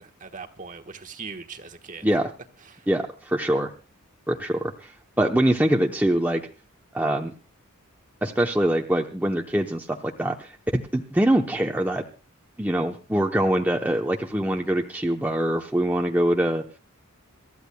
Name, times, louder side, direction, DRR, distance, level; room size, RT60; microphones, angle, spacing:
voice 1, 0.0-2.1 2.6-2.9, right 5 dB, 35° right, 1.2 m, -40 dB
voice 2, 2.9-3.7 4.3-4.9 5.2-6.4 6.9-7.3 8.2-12.0 12.6-16.6, right 1 dB, 10° right, 0.7 m, -24 dB
27.5 x 13.5 x 2.2 m
head